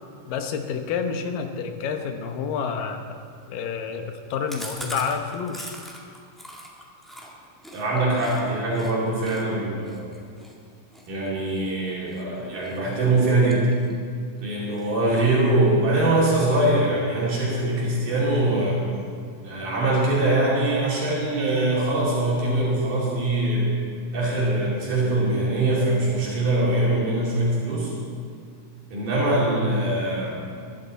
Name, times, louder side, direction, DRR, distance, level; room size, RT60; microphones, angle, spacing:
voice 1, 0.3-3.2 3.5-5.8, left 6 dB, 80° left, 5 dB, 2.7 m, -29 dB
Chewing mastication, 4.5-8.4 8.7-8.9 9.2-12.2 12.6-12.9 13.2-14.1 14.4-14.5 14.8-14.9 15.2-15.8, equal, ahead, 0.7 m, -41 dB
voice 2, 7.7-10.1 11.1-13.7 14.4-18.8 19.4-23.7 24.1-27.9 28.9-30.4, right 2 dB, 70° right, -6 dB, 4.3 m, -23 dB
22.0 x 11.0 x 4.1 m, 2.3 s
omnidirectional pair, 3.9 m